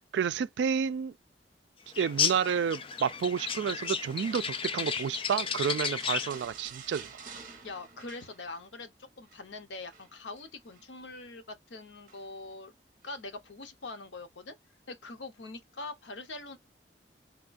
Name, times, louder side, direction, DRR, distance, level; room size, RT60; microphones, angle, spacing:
voice 1, 0.1-1.1 2.0-7.1, right 7 dB, 75° right, 0.3 m, -30 dB
sound 1, 1.9-6.4, left 7 dB, 30° left, 0.3 m, -33 dB
sound 2, 3.8-8.8 9.1-9.5 9.9-10.9 12.1-12.5 13.0-13.2, right 5 dB, 50° right, 0.8 m, -50 dB
voice 2, 7.6-12.7 13.0-14.6 14.9-16.6, left 3 dB, 90° left, 0.7 m, -43 dB
3.5 x 2.3 x 2.4 m
head